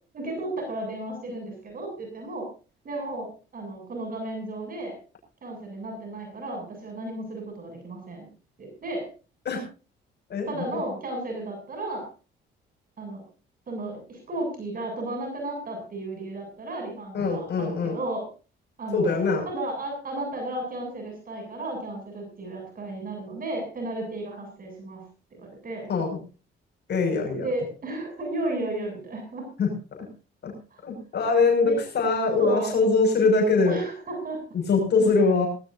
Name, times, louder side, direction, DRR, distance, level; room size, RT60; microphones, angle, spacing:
voice 1, 0.1-2.5 2.8-3.3 3.5-5.0 5.4-8.3 8.6-9.0 10.4-12.1 13.0-13.2 13.7-18.2 18.8-25.0 25.4-25.9 27.4-29.4 30.7-30.8 31.6-31.8 32.4-32.7 33.6-34.4 35.2-35.3, right 2 dB, 45° right, 2 dB, 7.8 m, -33 dB
voice 2, 10.3-10.8 17.1-18.0 18.9-19.5 25.9-26.2 26.9-27.5 29.6-30.1 30.4-30.5 30.8-33.8 34.5-35.5, left 4 dB, 60° left, 1 dB, 6.2 m, -23 dB
19.0 x 18.0 x 2.7 m, 0.34 s
cardioid pair, 90°, 20 cm